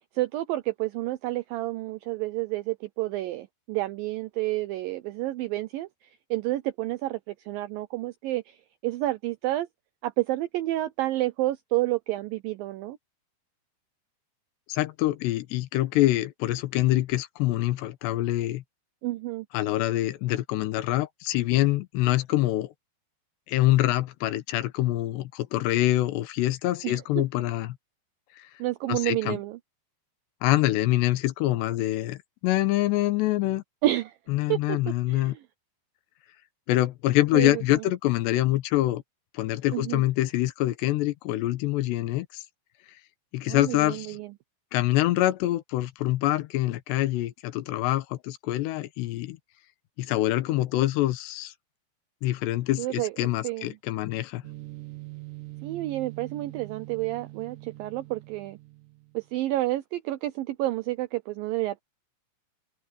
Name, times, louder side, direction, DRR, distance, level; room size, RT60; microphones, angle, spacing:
voice 1, 0.1-9.7 10.0-13.0 19.0-19.5 26.8-27.2 28.6-29.6 33.8-34.2 34.5-34.8 35.1-35.4 37.3-37.8 39.7-40.0 43.5-44.3 52.8-53.1 53.4-53.8 55.6-58.6 59.1-61.8, right 17 dB, 85° right, 2.0 m, -30 dB
voice 2, 14.7-18.6 19.5-22.7 23.5-27.8 28.9-29.4 30.4-33.6 34.3-35.4 36.7-39.0 39.3-42.4 43.3-44.2 44.7-49.4 50.0-51.5 52.2-54.4, left 15 dB, 85° left, 3.2 m, -25 dB
sound 1, 54.4-59.3, right 20 dB, 60° right, 2.6 m, -43 dB
omnidirectional pair, 4.8 m